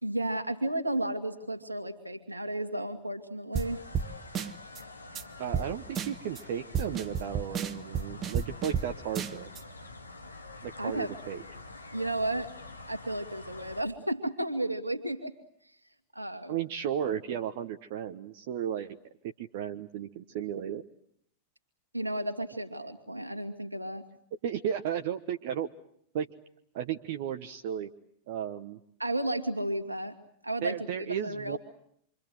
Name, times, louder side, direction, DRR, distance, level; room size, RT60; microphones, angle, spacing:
voice 1, 0.0-3.8 10.8-11.1 11.9-12.5 12.9-15.3 16.1-16.6 21.9-24.0 29.0-30.2 30.4-31.6, right 1 dB, 85° right, 7 dB, 2.3 m, -33 dB
sound 1, 3.5-13.8, left 2 dB, 80° left, 2.1 m, -47 dB
sound 2, 3.6-3.7 3.9-4.1 4.4-4.8 5.2-5.3 5.5-5.7 6.0-6.4 6.7-8.9 9.2-9.6, right 7 dB, 25° right, 1.2 m, -31 dB
voice 2, 5.4-9.5 10.6-11.4 16.5-19.0 19.2-20.8 24.4-25.7 26.1-26.3 26.7-27.9 28.3-28.8 30.6-31.6, right 9 dB, 50° right, 7 dB, 1.2 m, -34 dB
27.5 x 24.5 x 7.9 m, 0.70 s
figure-of-eight pair, 90°, 0 cm